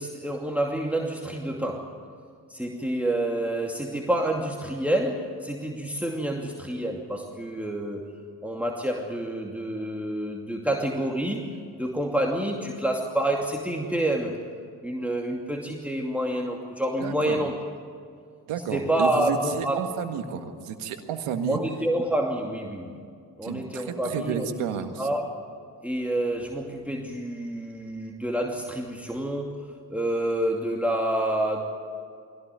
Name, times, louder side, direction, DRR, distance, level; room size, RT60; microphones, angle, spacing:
voice 1, 0.0-1.9 2.5-8.1 8.4-14.4 14.8-17.6 18.7-19.9 21.5-23.0 23.4-24.7 25.0-25.3 25.8-31.6, right 1 dB, 5° right, 1 dB, 2.6 m, -28 dB
voice 2, 17.0-17.4 18.5-21.6 23.4-25.1, right 7 dB, 80° right, 7 dB, 1.8 m, -31 dB
21.5 x 17.5 x 9.4 m, 2.4 s
hypercardioid pair, 40°, 50 cm